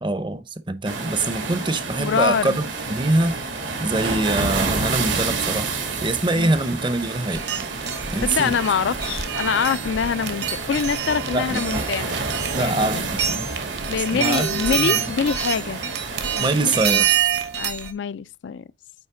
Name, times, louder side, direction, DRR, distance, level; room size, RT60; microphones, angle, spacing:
voice 1, 0.0-3.4 3.8-5.7 6.0-7.4 8.1-8.5 11.3-11.6 12.5-13.5 14.0-14.5 14.8-15.1 16.4-17.3, right 2 dB, 25° right, 0.6 m, -24 dB
sound 1, 0.8-16.9, right 3 dB, 85° right, 1.9 m, -29 dB
voice 2, 2.0-2.6 6.3-6.6 8.2-12.2 12.6-13.1 13.9-15.8 16.3-16.8 17.6-18.7, left 6 dB, 75° left, 0.4 m, -25 dB
sound 2, 7.3-17.9, right 9 dB, 65° right, 1.0 m, -27 dB
9.2 x 3.2 x 4.8 m
head